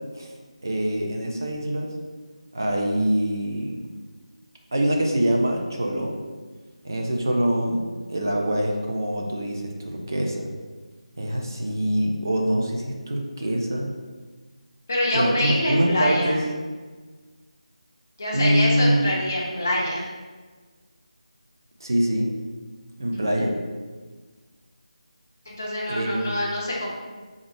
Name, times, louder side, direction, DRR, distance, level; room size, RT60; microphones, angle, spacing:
voice 1, 0.6-1.9 2.5-3.9 4.7-6.2 6.8-7.8 8.1-10.5 11.2-13.9 15.1-16.4 18.3-19.1 21.8-22.4 23.0-23.6 25.9-26.2, right 1 dB, 30° right, 1 dB, 0.4 m, -24 dB
voice 2, 14.9-16.4 18.2-20.1 23.1-23.2 25.5-26.9, left 1 dB, 20° left, -4 dB, 0.5 m, -25 dB
3.6 x 2.5 x 3.5 m, 1.4 s
figure-of-eight pair, 180°, 4 cm